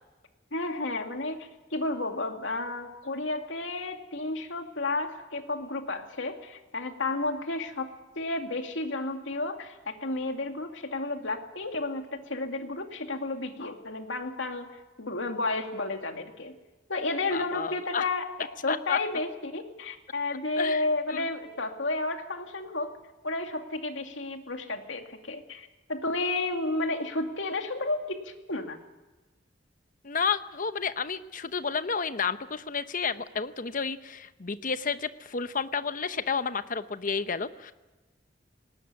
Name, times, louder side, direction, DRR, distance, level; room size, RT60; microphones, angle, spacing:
voice 1, 0.5-7.9 8.1-16.5 16.9-18.3 18.6-22.9 23.2-28.8, left 2 dB, 80° left, 5 dB, 2.4 m, -32 dB
voice 2, 17.3-18.1 18.7-19.0 20.6-21.3 30.0-37.7, left 5 dB, 45° left, 12 dB, 0.9 m, -31 dB
19.0 x 18.5 x 9.7 m, 1.2 s
head